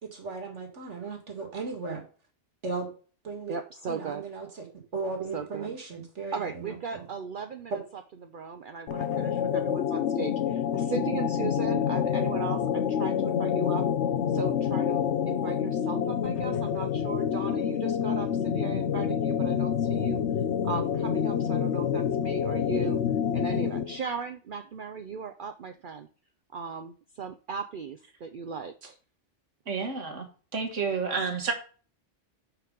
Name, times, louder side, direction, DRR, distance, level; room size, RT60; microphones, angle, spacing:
voice 1, 0.0-2.0 2.6-2.9 3.2-3.6 3.9-7.0 7.7-7.8, right 4 dB, 75° right, 3 dB, 2.3 m, -36 dB
voice 2, 3.5-4.2 5.3-5.7 6.3-7.7 8.2-13.8 14.3-20.2 20.6-23.0 23.3-26.1 26.5-29.0, right 5 dB, 50° right, 7 dB, 0.7 m, -37 dB
sound 1, 8.9-24.0, left 8 dB, 70° left, 0.9 m, -27 dB
voice 3, 29.7-30.3 30.5-31.5, right 5 dB, 90° right, 4 dB, 2.0 m, -30 dB
6.1 x 5.9 x 5.1 m, 0.38 s
omnidirectional pair, 1.2 m